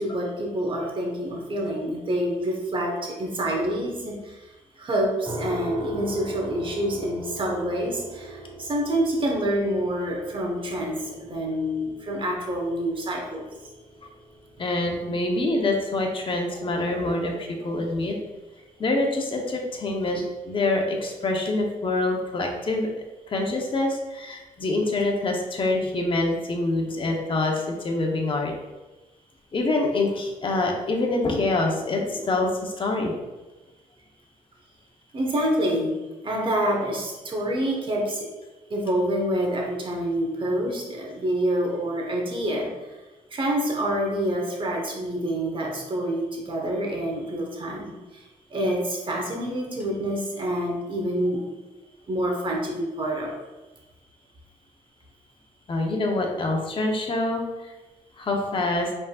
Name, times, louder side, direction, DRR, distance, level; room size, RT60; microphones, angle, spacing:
voice 1, 0.0-4.4 4.8-13.4 16.5-16.6 17.0-17.1 35.1-36.0 36.2-38.3 38.7-42.7 43.3-47.9 48.5-51.4 52.1-53.3, right 1 dB, 40° right, 0 dB, 1.2 m, -27 dB
sound 1, 5.2-18.1, right 2 dB, 20° right, 1.2 m, -41 dB
voice 2, 14.6-18.2 18.8-22.9 23.3-28.5 29.5-33.1 55.7-57.7 58.2-58.9, left 2 dB, 40° left, 1 dB, 0.9 m, -25 dB
5.2 x 3.7 x 2.4 m, 1.1 s
cardioid pair, 80°, 14 cm